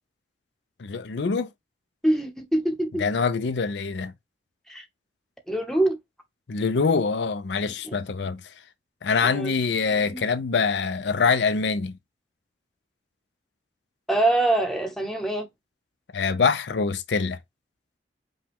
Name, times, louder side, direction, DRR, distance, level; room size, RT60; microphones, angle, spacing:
voice 1, 0.8-1.5 3.0-4.1 6.5-8.4 9.0-11.9 16.1-17.4, left 5 dB, 75° left, 0.5 m, -24 dB
voice 2, 2.0-3.0 4.7-4.8 5.5-6.0 7.8-8.0 9.2-9.5 10.1-10.2 14.1-15.5, right 2 dB, 5° left, 0.9 m, -24 dB
5.2 x 2.3 x 3.5 m
head